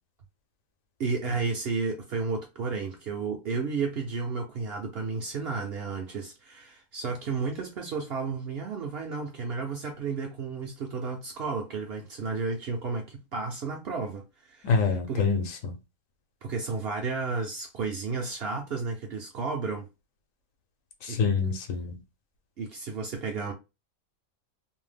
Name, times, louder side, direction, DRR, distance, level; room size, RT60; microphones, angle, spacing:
voice 1, 1.0-15.3 16.4-19.9 21.1-21.2 22.6-23.5, right 4 dB, 60° right, 0.7 m, -32 dB
voice 2, 14.6-15.7 21.0-22.0, left 5 dB, 70° left, 1.0 m, -26 dB
2.6 x 2.1 x 3.3 m
omnidirectional pair, 1.5 m